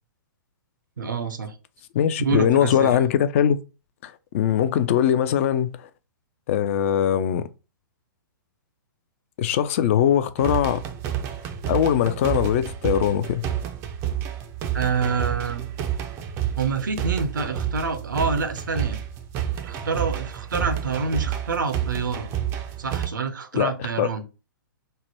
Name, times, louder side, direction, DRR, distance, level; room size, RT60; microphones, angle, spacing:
voice 1, 1.0-1.5 2.2-2.9 14.7-15.7 16.6-19.0 19.6-22.3 22.8-24.2, right 5 dB, 65° right, 0.6 m, -27 dB
voice 2, 1.9-3.6 4.0-5.8 6.5-7.5 9.4-10.8 11.7-13.4 23.5-24.2, left 9 dB, 40° left, 0.3 m, -21 dB
sound 1, 10.4-23.1, right 10 dB, 25° right, 0.4 m, -30 dB
3.3 x 2.1 x 4.2 m
figure-of-eight pair, 115°, 11 cm